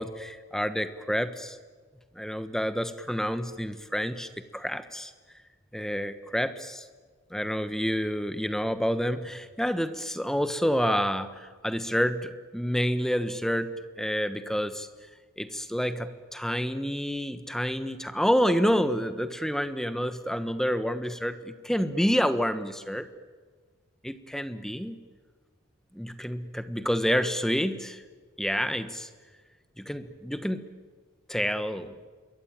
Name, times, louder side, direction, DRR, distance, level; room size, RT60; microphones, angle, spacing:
voice 1, 0.0-1.6 2.1-5.1 5.7-6.9 7.3-14.9 15.4-23.1 24.0-25.0 25.9-28.0 28.4-29.1 29.8-30.6 31.3-31.9, equal, ahead, 11 dB, 1.2 m, -28 dB
27.0 x 23.0 x 8.9 m, 1.4 s
head